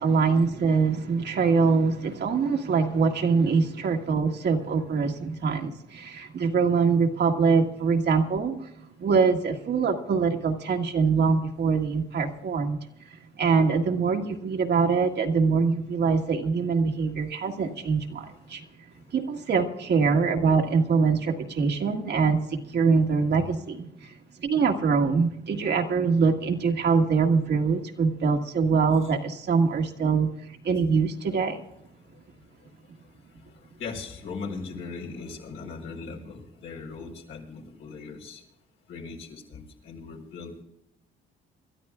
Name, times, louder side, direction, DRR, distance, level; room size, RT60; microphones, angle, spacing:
voice 1, 0.0-8.7 9.0-12.8 13.4-18.6 19.1-24.1 24.4-31.6, right 5 dB, 60° right, 3 dB, 1.6 m, -24 dB
voice 2, 33.8-38.4 38.9-40.6, left 4 dB, 75° left, 0 dB, 4.2 m, -39 dB
28.0 x 13.0 x 2.4 m, 0.82 s
cardioid pair, 90°, 20 cm